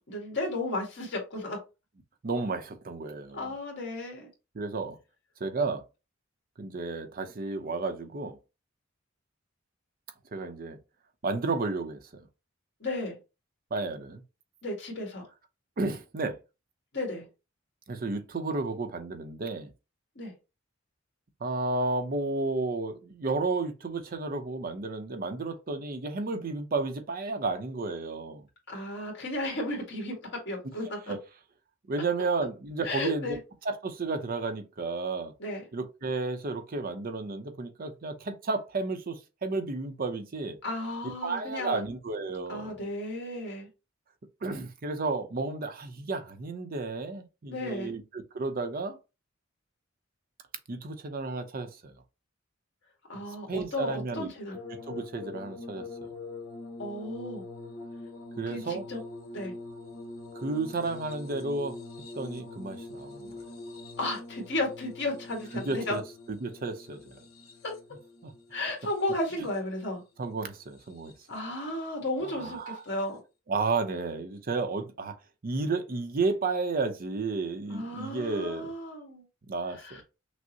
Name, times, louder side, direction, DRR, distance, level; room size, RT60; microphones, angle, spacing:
voice 1, 0.1-1.6 3.3-4.3 12.8-13.2 14.6-15.3 16.9-17.3 20.1-20.3 28.7-31.1 32.8-33.4 35.4-35.6 40.6-41.8 42.5-43.7 47.5-47.9 53.1-54.6 56.8-57.4 58.5-59.0 59.3-59.5 64.0-66.0 67.6-67.7 68.5-70.0 71.3-73.2 77.7-79.2 79.7-80.0, left 1 dB, 60° left, 1.7 m, -34 dB
voice 2, 2.2-3.5 4.5-5.0 5.4-5.8 6.6-8.4 10.3-10.8 11.2-12.0 13.7-14.2 15.8-16.4 17.9-19.7 21.4-28.4 31.1-31.2 31.9-33.3 33.6-35.3 35.7-40.6 41.2-42.7 44.4-49.0 50.7-51.9 53.5-54.3 54.7-56.1 58.4-58.8 60.3-61.8 62.1-63.4 65.5-66.0 66.3-67.2 68.2-68.3 70.2-71.1 72.3-72.8 73.5-75.1 75.4-78.7 79.5-80.0, right 3 dB, 45° right, 0.6 m, -32 dB
sound 1, 54.5-69.8 70.6-71.4 72.8-72.9, left 2 dB, 85° left, 0.9 m, -44 dB
6.1 x 2.0 x 2.7 m
head